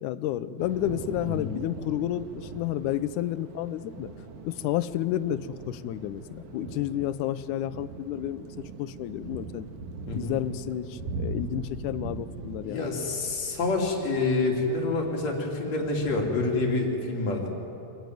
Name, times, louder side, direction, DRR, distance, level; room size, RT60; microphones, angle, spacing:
voice 1, 0.0-4.1 4.4-9.7 10.1-12.9, left 12 dB, 85° left, 15 dB, 2.2 m, -31 dB
Thunder / Rain, 0.6-16.7, right 3 dB, 80° right, 2.9 m, -41 dB
voice 2, 12.6-17.5, left 3 dB, 60° left, 0 dB, 4.0 m, -27 dB
26.0 x 14.5 x 9.3 m, 2.9 s
omnidirectional pair, 3.5 m